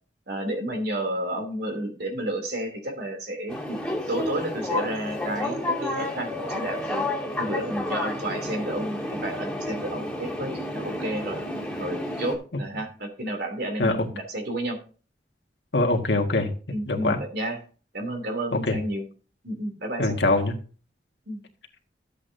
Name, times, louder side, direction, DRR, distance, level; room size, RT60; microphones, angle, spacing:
voice 1, 0.3-3.8 4.1-7.0 7.4-11.4 11.8-14.8 16.7-17.6 17.9-19.0 19.4-20.2 21.3-21.4, right 1 dB, 65° right, 4 dB, 2.9 m, -31 dB
sound 1, 3.5-12.4, left 1 dB, 5° left, 2.5 m, -31 dB
voice 2, 15.7-16.5 16.9-17.2 18.5-18.8 20.0-20.6, left 2 dB, 85° left, 2 dB, 1.7 m, -23 dB
13.5 x 8.4 x 2.7 m, 0.38 s
head